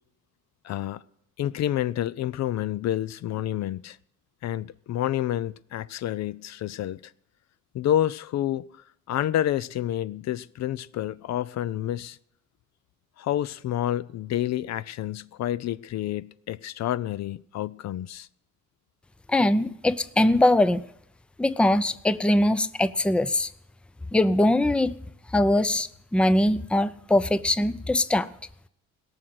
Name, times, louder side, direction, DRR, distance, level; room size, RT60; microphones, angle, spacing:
voice 1, 0.6-1.0 1.4-4.0 4.4-7.0 7.7-8.6 9.1-12.2 13.2-18.3, left 12 dB, 65° left, 0.5 m, -29 dB
voice 2, 19.3-20.8 21.4-23.5 24.1-24.9 25.3-28.3, left 1 dB, 5° left, 0.5 m, -22 dB
17.5 x 6.5 x 7.7 m
cardioid pair, 90°, 30 cm